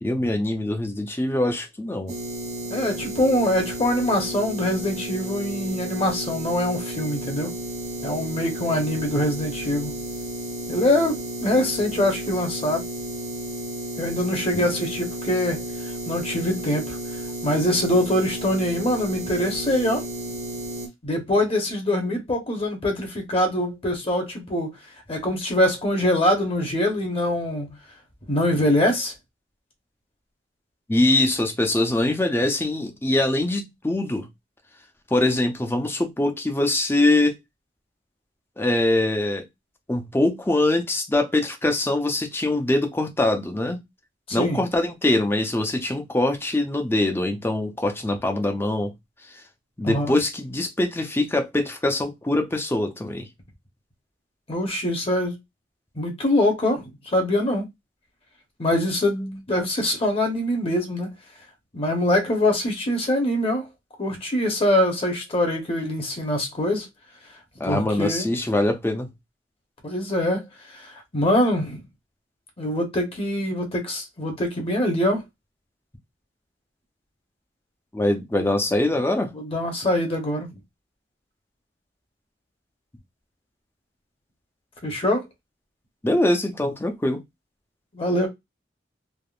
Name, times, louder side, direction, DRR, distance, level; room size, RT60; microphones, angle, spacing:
voice 1, 0.0-2.1 14.5-14.6 30.9-34.3 35.1-37.4 38.6-39.4 39.9-43.8 44.3-48.9 49.8-53.3 67.6-69.1 77.9-79.3 86.0-87.2, left 1 dB, 15° left, 0.5 m, -23 dB
sound 1, 2.1-20.9, right 1 dB, 40° right, 0.6 m, -33 dB
voice 2, 2.6-7.5 8.0-10.0 10.7-12.8 14.0-15.6 16.1-17.0 17.4-20.1 21.0-24.7 25.1-27.7 28.3-29.1 44.3-44.6 49.8-50.2 54.5-55.4 56.0-57.7 58.6-61.1 61.7-63.7 64.0-66.9 67.6-68.3 69.8-70.5 70.7-71.8 72.6-75.2 79.3-80.5 84.8-85.3 87.9-88.3, left 1 dB, 30° left, 0.8 m, -24 dB
3.4 x 2.0 x 2.3 m
head